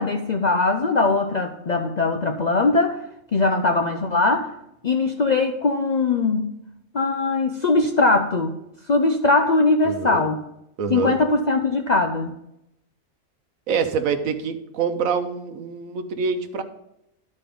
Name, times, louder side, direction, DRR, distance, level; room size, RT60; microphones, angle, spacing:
voice 1, 0.0-3.0 3.3-4.5 4.8-6.5 6.9-8.5 8.9-10.4 10.9-12.3, left 3 dB, 55° left, 4 dB, 0.4 m, -20 dB
voice 2, 9.8-10.2 10.8-11.2 13.7-16.6, right 5 dB, 80° right, 8 dB, 1.2 m, -25 dB
12.0 x 4.3 x 5.2 m, 0.83 s
omnidirectional pair, 1.4 m